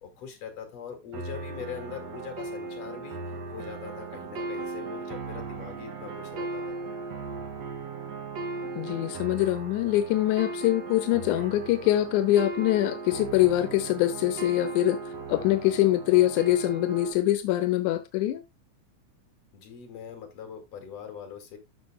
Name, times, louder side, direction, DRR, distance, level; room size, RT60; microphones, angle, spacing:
voice 1, 0.0-6.9 19.5-21.6, left 7 dB, 55° left, 3.3 m, -42 dB
sound 1, 1.1-17.1, right 3 dB, 60° right, 2.6 m, -37 dB
voice 2, 8.8-15.0 15.3-18.4, left 14 dB, 85° left, 2.1 m, -24 dB
12.5 x 5.9 x 2.2 m
omnidirectional pair, 3.5 m